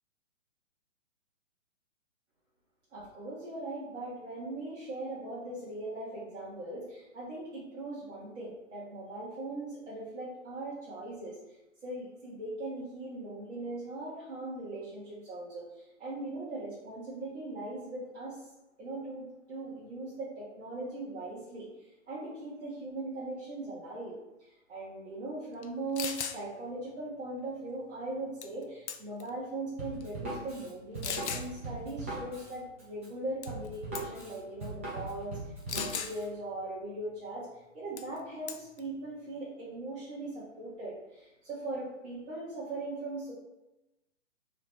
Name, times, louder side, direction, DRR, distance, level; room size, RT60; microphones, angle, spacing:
voice 1, 2.9-11.6 11.8-18.5 18.8-24.1 24.4-43.3, right 2 dB, 60° right, -9 dB, 1.4 m, -40 dB
sound 1, 25.6-25.7 25.9-26.4 28.4-28.6 28.9-29.3 30.0-30.1 31.0-31.5 33.4-33.7 33.9-34.2 35.7-36.1 38.0-38.2 38.5-38.8, left 7 dB, 60° left, 0.5 m, -36 dB
Drum kit, 29.8-36.2, right 2 dB, 10° right, 0.4 m, -40 dB
3.3 x 2.9 x 4.4 m, 0.97 s
figure-of-eight pair, 135°, 38 cm